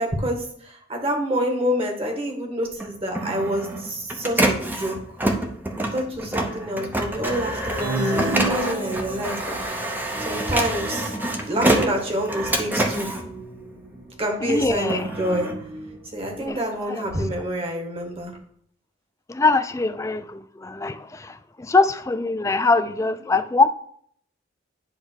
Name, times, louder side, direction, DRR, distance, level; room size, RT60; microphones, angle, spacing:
voice 1, 0.0-4.9 5.9-9.6 10.2-11.1 11.5-13.1 14.2-15.5 16.1-18.3, equal, 30° right, 1 dB, 1.7 m, -27 dB
Printer, 2.7-14.2 14.6-16.5, right 1 dB, 10° right, 0.8 m, -27 dB
sound 1, 7.2-16.0, equal, 75° right, 1.8 m, -41 dB
sound 2, 7.8-9.4, right 1 dB, 50° right, 0.9 m, -27 dB
voice 2, 14.4-15.1 16.4-16.6 16.9-17.1 19.3-23.7, left 3 dB, 15° left, 11 dB, 0.4 m, -22 dB
9.8 x 3.5 x 6.3 m, 0.64 s
head